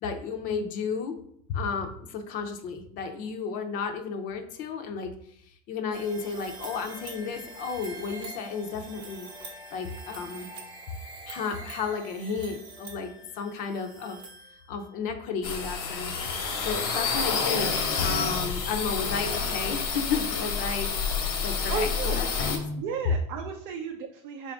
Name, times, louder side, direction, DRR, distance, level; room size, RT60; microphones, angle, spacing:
voice 1, 0.0-1.2 1.5-5.1 5.7-9.3 9.7-10.5 11.3-14.2 14.7-16.1 16.6-22.8, left 5 dB, 50° left, 6 dB, 0.5 m, -33 dB
sound 1, 5.9-15.0, right 2 dB, 25° right, 0.7 m, -44 dB
sound 2, 15.4-22.6, left 5 dB, 85° left, 1.0 m, -29 dB
voice 2, 21.7-22.3 22.8-24.5, right 5 dB, 60° right, 3 dB, 0.5 m, -34 dB
4.1 x 2.5 x 3.5 m, 0.67 s
supercardioid pair, 130°, 18 cm